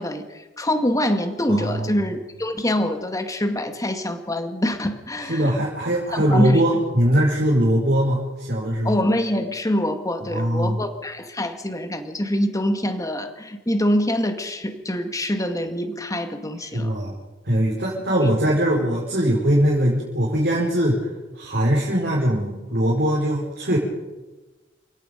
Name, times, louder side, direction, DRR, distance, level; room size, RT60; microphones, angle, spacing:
voice 1, 0.0-5.5 6.1-6.6 8.8-16.9, left 1 dB, 20° left, 7 dB, 2.0 m, -25 dB
voice 2, 1.5-1.9 5.3-8.9 10.3-10.8 16.7-17.1 17.5-21.1 21.4-23.8, equal, 60° right, -3 dB, 5.2 m, -21 dB
30.0 x 17.5 x 5.3 m, 1.1 s
head